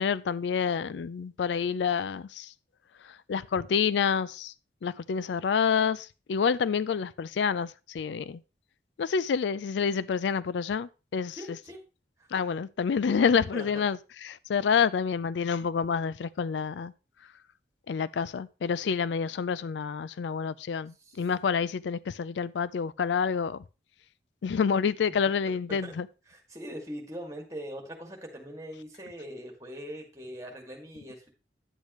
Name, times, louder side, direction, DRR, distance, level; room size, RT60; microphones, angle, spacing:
voice 1, 0.0-2.5 3.0-4.5 4.8-8.4 9.0-11.4 12.3-16.9 17.9-23.6 24.4-26.1, left 6 dB, 80° left, 0.4 m, -28 dB
voice 2, 11.4-11.8 13.5-13.7 21.0-21.2 25.5-26.0 26.3-31.3, equal, 20° right, 2.1 m, -41 dB
10.0 x 8.0 x 3.1 m
head